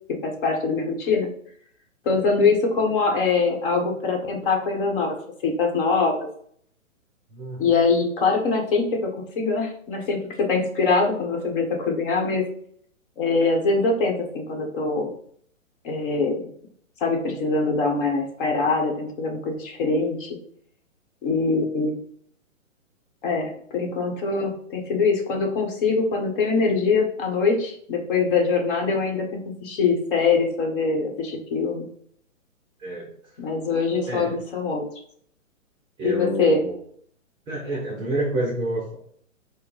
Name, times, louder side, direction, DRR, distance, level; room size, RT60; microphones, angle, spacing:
voice 1, 0.2-1.3 2.0-5.1 5.4-6.3 7.6-12.5 13.2-15.1 15.8-16.5 17.0-20.4 21.2-21.9 23.2-31.9 33.4-34.8 36.0-36.6, left 4 dB, 40° left, 1 dB, 1.3 m, -23 dB
voice 2, 7.3-7.7 32.8-33.1 34.1-34.4 36.0-36.7 37.5-39.0, right 1 dB, 10° right, -3 dB, 0.6 m, -28 dB
4.9 x 2.2 x 4.9 m, 0.63 s
hypercardioid pair, 130°, 41 cm